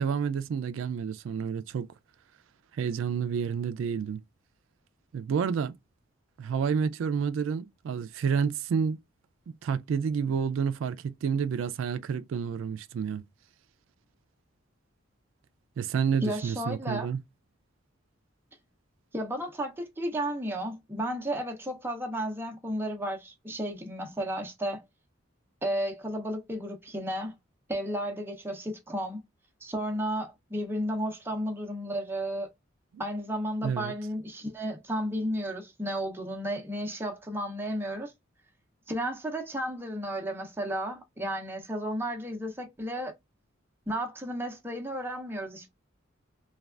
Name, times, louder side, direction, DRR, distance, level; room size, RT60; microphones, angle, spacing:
voice 1, 0.0-1.9 2.7-4.2 5.1-5.7 6.4-9.0 9.6-13.2 15.8-17.2 33.6-33.9, right 6 dB, 75° right, 0.3 m, -29 dB
voice 2, 16.2-17.1 19.1-24.8 25.6-27.3 27.7-29.2 29.6-32.5 33.0-38.1 38.9-43.1 43.9-45.7, equal, 10° right, 0.6 m, -33 dB
3.2 x 2.3 x 2.4 m
head